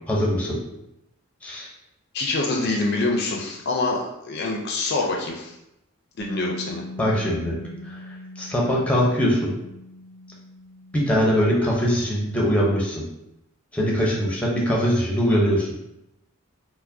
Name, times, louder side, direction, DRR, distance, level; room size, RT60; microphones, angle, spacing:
voice 1, 0.1-0.6 1.4-1.7 7.0-7.6 7.8-8.0 8.4-9.5 10.9-13.0 13.7-15.7, equal, 5° left, -3 dB, 0.6 m, -22 dB
voice 2, 2.1-5.5 6.2-6.8, left 2 dB, 50° left, 0 dB, 0.4 m, -25 dB
Bass guitar, 6.2-12.4, left 1 dB, 35° right, 0.4 m, -41 dB
4.6 x 2.0 x 2.6 m, 0.85 s
head